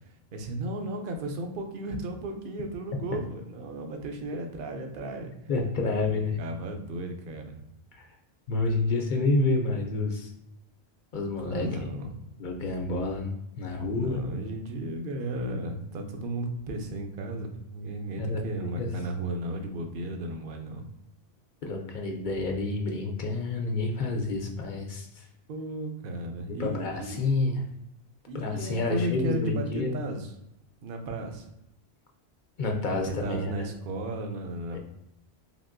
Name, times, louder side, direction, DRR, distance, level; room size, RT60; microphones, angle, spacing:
voice 1, 0.3-5.3 6.1-7.6 11.4-12.2 13.9-20.9 25.5-27.2 28.3-30.3 30.8-31.5 32.9-34.8, right 1 dB, 65° right, 4 dB, 0.7 m, -34 dB
voice 2, 5.5-6.4 7.9-8.1 8.5-10.3 11.1-11.9 12.4-14.2 18.2-18.4 18.8-18.9 21.6-25.2 26.5-27.6 28.3-30.0 32.6-33.7 34.7-34.8, left 3 dB, 60° left, 2 dB, 0.6 m, -29 dB
3.5 x 2.5 x 2.5 m, 0.84 s
omnidirectional pair, 1.1 m